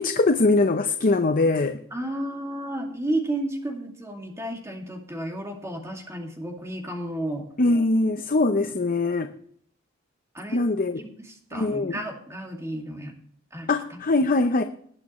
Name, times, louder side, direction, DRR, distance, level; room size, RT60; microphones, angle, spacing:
voice 1, 0.0-1.8 7.6-9.3 10.5-11.0 11.5-12.0 13.7-14.6, left 2 dB, 40° left, 0.7 m, -22 dB
voice 2, 1.9-7.4 10.3-10.6 11.0-13.2 13.5-13.7, right 1 dB, 15° right, 2.3 m, -32 dB
19.5 x 8.6 x 3.1 m
head